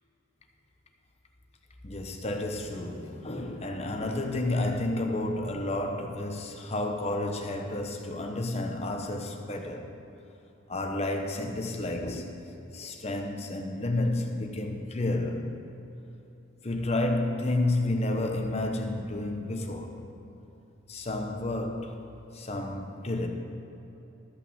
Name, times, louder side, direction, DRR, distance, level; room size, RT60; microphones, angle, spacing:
voice 1, 1.8-9.9 10.7-12.4 12.7-15.5 16.6-20.0 20.9-22.0 22.3-23.3, left 2 dB, 35° left, 3 dB, 1.0 m, -31 dB
13.5 x 5.7 x 7.2 m, 2.9 s
head